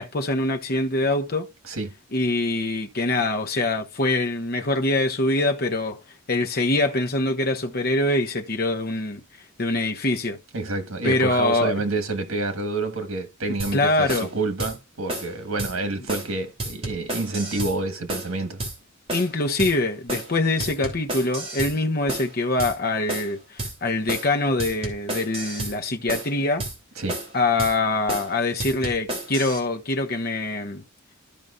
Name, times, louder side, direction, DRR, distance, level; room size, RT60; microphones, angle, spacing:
voice 1, 0.0-1.5 2.1-6.0 6.3-9.2 9.6-10.4 11.0-11.7 13.7-14.3 19.1-26.7 27.3-30.8, left 2 dB, 45° left, 1.1 m, -24 dB
voice 2, 10.5-18.6 27.0-27.2, right 2 dB, 75° right, 1.5 m, -28 dB
sound 1, 13.6-13.8 14.1-14.3 14.6-14.8 15.1-15.3 15.6-15.7 16.1-16.3 16.6-17.8 18.1-18.3 18.6-18.8 19.1-19.3 19.6-19.8 20.1-20.3 20.6-21.8 22.1-22.3 22.6-22.8 23.1-23.3 23.6-23.8 24.1-24.3 24.6-25.8 26.1-26.3 26.6-26.8 27.1-27.3 27.6-27.8 28.1-28.3 28.6-29.6, right 2 dB, 30° right, 3.1 m, -31 dB
14.0 x 5.1 x 2.5 m
head